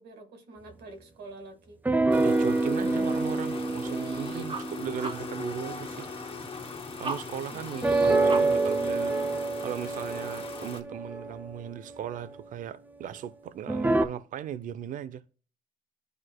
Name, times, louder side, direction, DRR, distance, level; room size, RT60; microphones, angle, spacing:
voice 1, 0.0-1.8 7.5-7.8, right 2 dB, 70° right, 1.8 m, -47 dB
sound 1, 1.8-6.2 7.8-12.3 13.7-14.0, right 2 dB, 10° right, 0.6 m, -27 dB
sound 2, 2.1-10.8, left 5 dB, 30° left, 1.6 m, -41 dB
voice 2, 2.2-6.1 7.0-15.2, right 9 dB, 50° right, 0.5 m, -37 dB
sound 3, 3.5-8.7, right 3 dB, 30° right, 1.6 m, -41 dB
11.0 x 4.7 x 2.2 m
cardioid pair, 110°, 17 cm